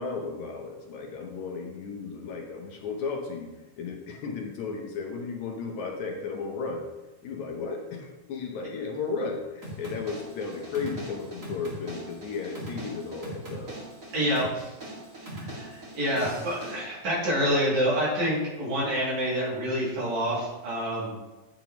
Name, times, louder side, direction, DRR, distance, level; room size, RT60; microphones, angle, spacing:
voice 1, 0.0-6.9 7.2-13.8, left 4 dB, 70° left, 1 dB, 2.2 m, -34 dB
sound 1, 9.6-16.8, right 1 dB, 30° right, 2.2 m, -41 dB
voice 2, 14.1-14.7 15.3-21.2, equal, 60° right, -6 dB, 3.9 m, -27 dB
8.9 x 8.4 x 3.0 m, 1.1 s
omnidirectional pair, 3.6 m